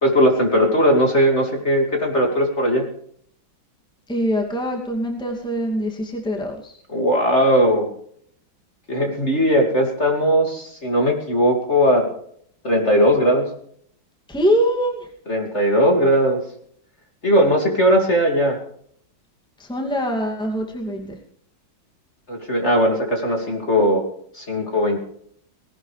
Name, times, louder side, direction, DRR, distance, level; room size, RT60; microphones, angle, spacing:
voice 1, 0.0-2.9 6.9-7.9 8.9-12.0 12.6-13.5 15.3-16.4 17.2-18.6 22.3-24.1 24.3-25.0, equal, 35° left, 2 dB, 2.7 m, -18 dB
voice 2, 4.1-6.8 14.3-15.1 19.6-21.2, equal, ahead, 1 dB, 2.3 m, -23 dB
19.0 x 17.5 x 3.4 m, 0.64 s
omnidirectional pair, 2.2 m